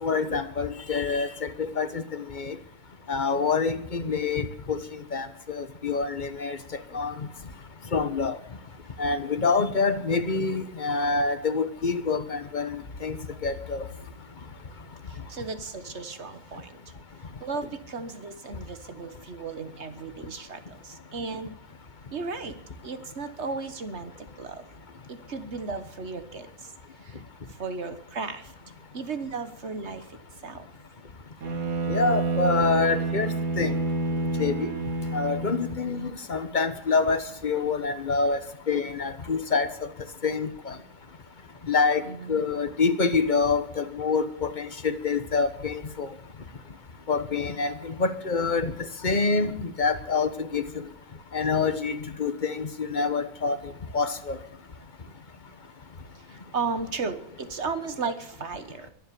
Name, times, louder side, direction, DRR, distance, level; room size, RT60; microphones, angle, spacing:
voice 1, 0.0-2.6 3.1-6.6 6.9-7.1 7.9-8.4 9.0-13.2 13.4-13.8 31.9-33.7 34.4-34.7 35.1-38.4 38.7-39.7 40.2-40.8 41.7-42.0 42.3-46.1 47.1-48.7 49.0-50.7 51.3-53.6 53.9-54.4, left 4 dB, 35° left, 10 dB, 1.2 m, -26 dB
voice 2, 15.1-16.8 17.4-21.5 22.1-22.6 22.8-24.6 25.1-26.7 27.0-27.2 27.6-28.5 28.9-30.7 35.8-36.1 42.0-42.4 56.3-58.9, right 4 dB, 50° right, 10 dB, 1.5 m, -35 dB
Bowed string instrument, 31.4-35.9, right 3 dB, 70° right, 2.2 m, -28 dB
22.0 x 7.5 x 6.9 m, 0.73 s
omnidirectional pair, 1.5 m